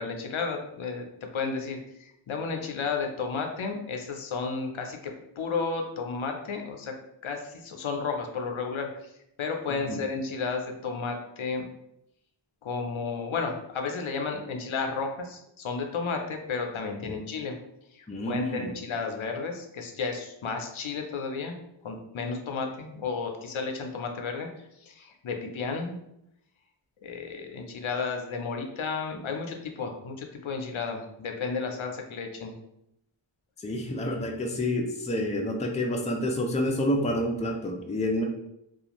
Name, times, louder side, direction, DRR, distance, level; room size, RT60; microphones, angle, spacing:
voice 1, 0.0-6.9 7.2-8.9 9.4-11.6 12.6-17.5 17.9-21.6 21.8-24.5 24.8-26.0 27.0-32.5, left 4 dB, 80° left, 3 dB, 0.5 m, -32 dB
voice 2, 18.1-18.7 33.6-38.2, left 1 dB, 15° left, 1 dB, 0.4 m, -28 dB
2.4 x 2.3 x 2.9 m, 0.81 s
wide cardioid pair, 50°, 48 cm